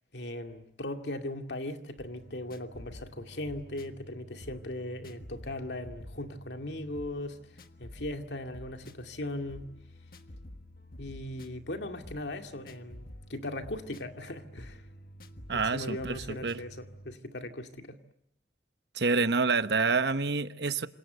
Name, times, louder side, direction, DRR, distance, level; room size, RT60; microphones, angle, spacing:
voice 1, 0.1-7.4 7.8-9.7 11.0-14.8 15.5-18.0, left 1 dB, 85° left, 2.3 m, -38 dB
sound 1, 2.0-17.2, equal, 55° left, 1.5 m, -49 dB
voice 2, 15.5-16.6 18.9-20.9, right 4 dB, 75° right, 1.1 m, -28 dB
27.5 x 26.5 x 7.8 m
head